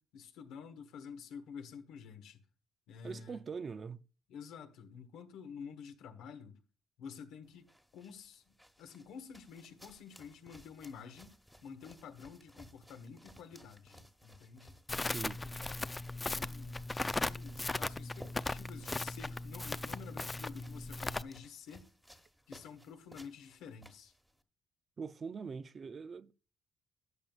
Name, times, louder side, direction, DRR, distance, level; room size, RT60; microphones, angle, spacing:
voice 1, 0.0-2.4 2.9-3.4 4.3-6.6 7.0-7.7 7.9-11.3 11.6-14.8 15.4-21.8 22.5-24.1, left 6 dB, 90° left, 1.4 m, -50 dB
voice 2, 3.0-4.0 15.0-15.4 25.0-26.3, right 5 dB, 40° right, 0.5 m, -43 dB
sound 1, 7.4-24.4, equal, ahead, 1.3 m, -59 dB
Crackle, 14.9-21.2, left 2 dB, 20° left, 0.4 m, -38 dB
13.5 x 9.0 x 2.4 m
cardioid pair, 90°, 0 cm